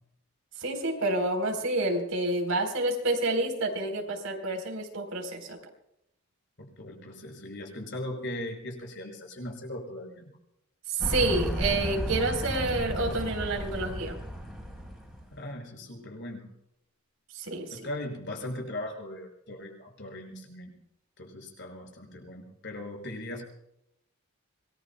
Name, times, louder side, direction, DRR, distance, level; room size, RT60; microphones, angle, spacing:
voice 1, 0.6-5.6 10.9-14.2 17.3-17.8, right 2 dB, 70° right, 4 dB, 4.0 m, -29 dB
voice 2, 6.6-10.3 15.3-16.5 17.7-20.7 21.2-23.4, left 1 dB, 55° left, 1 dB, 6.1 m, -39 dB
sound 1, 11.0-15.3, equal, ahead, 4.6 m, -33 dB
26.5 x 20.5 x 2.3 m, 0.78 s
head